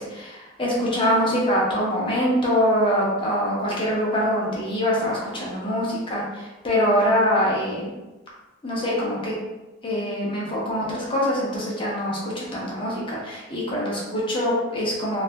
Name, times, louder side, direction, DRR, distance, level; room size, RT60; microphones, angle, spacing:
voice 1, 0.0-7.9 8.6-9.3 9.8-15.2, equal, 25° left, -5 dB, 0.8 m, -24 dB
3.3 x 2.6 x 2.2 m, 1.1 s
head